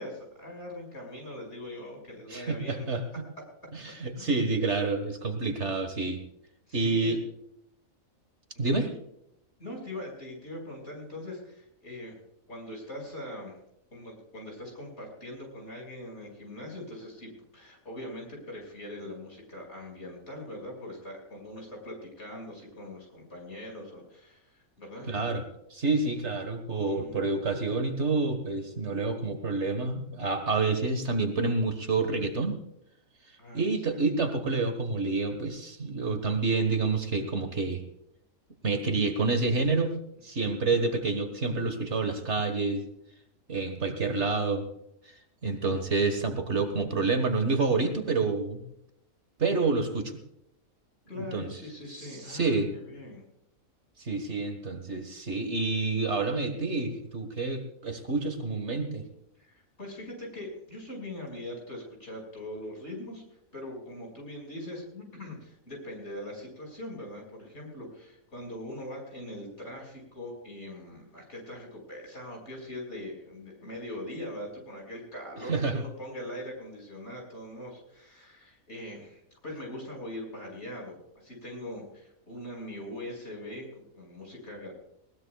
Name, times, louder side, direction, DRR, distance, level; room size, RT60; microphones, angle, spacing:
voice 1, 0.0-2.9 4.1-4.5 6.7-7.2 8.7-8.9 9.6-12.2 12.5-13.6 13.9-25.1 26.9-27.4 33.4-33.6 40.4-40.6 51.1-53.2 59.4-63.2 63.5-84.7, left 1 dB, 50° left, 0 dB, 6.1 m, -42 dB
voice 2, 2.3-3.2 3.7-6.2 6.7-7.2 8.6-8.9 25.1-25.4 25.7-32.6 33.5-37.8 38.6-40.0 40.2-42.8 43.5-44.7 45.4-48.6 49.4-50.1 51.2-51.6 52.0-52.7 54.0-59.0 75.5-75.8, right 3 dB, 55° right, 7 dB, 1.8 m, -28 dB
20.5 x 18.5 x 2.4 m, 0.78 s
omnidirectional pair, 1.5 m